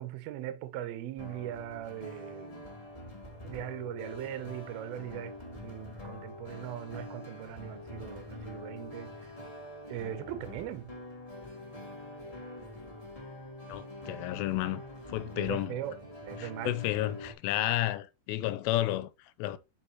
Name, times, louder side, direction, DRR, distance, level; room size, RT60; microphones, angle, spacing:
voice 1, 0.0-2.7 3.4-5.4 5.6-9.3 9.9-10.9 15.4-16.8, right 12 dB, 75° right, 2.4 m, -40 dB
sound 1, 1.2-17.3, left 1 dB, 25° left, 0.7 m, -45 dB
voice 2, 13.7-14.8 15.1-15.8 16.4-19.1 19.4-19.6, left 15 dB, 90° left, 2.8 m, -31 dB
7.9 x 6.2 x 2.9 m
omnidirectional pair, 5.0 m